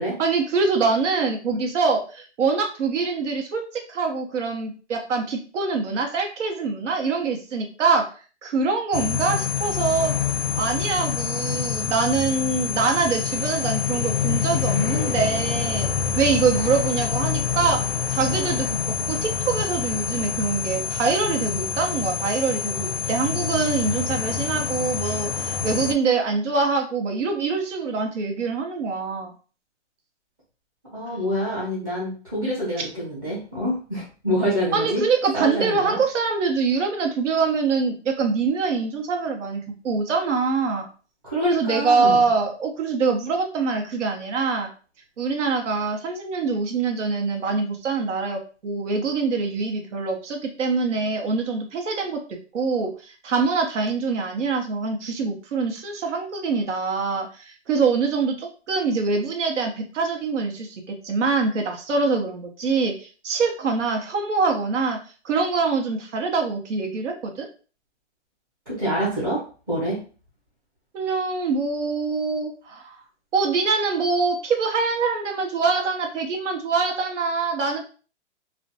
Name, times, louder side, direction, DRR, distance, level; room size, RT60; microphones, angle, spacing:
voice 1, 0.2-8.1 8.4-10.1 10.6-15.9 16.1-17.8 18.1-18.8 19.1-29.3 34.7-40.9 41.4-44.7 45.2-52.2 52.5-65.0 65.2-67.5 70.9-73.0 73.3-77.9, right 4 dB, 85° right, 2 dB, 0.7 m, -24 dB
sound 1, 8.9-25.9, left 7 dB, 55° left, 0.4 m, -26 dB
voice 2, 30.9-35.0 35.3-36.0 41.2-42.2 68.7-70.0, equal, 15° right, -8 dB, 0.6 m, -26 dB
2.5 x 2.1 x 2.6 m, 0.38 s
hypercardioid pair, 170°, 35 cm